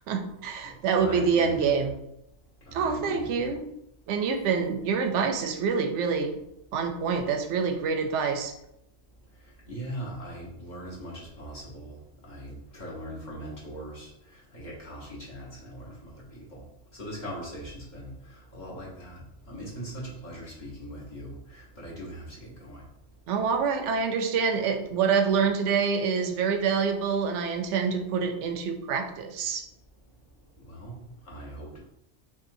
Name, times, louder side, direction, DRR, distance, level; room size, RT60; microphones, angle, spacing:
voice 1, 0.1-1.9 2.7-3.6 4.1-6.4 6.7-8.5 23.3-29.6, right 6 dB, 70° right, 5 dB, 0.8 m, -26 dB
voice 2, 0.6-1.9 2.6-3.5 9.2-23.3 30.1-31.8, right 1 dB, 35° left, -6 dB, 1.3 m, -41 dB
5.6 x 2.5 x 2.6 m, 0.82 s
omnidirectional pair, 1.4 m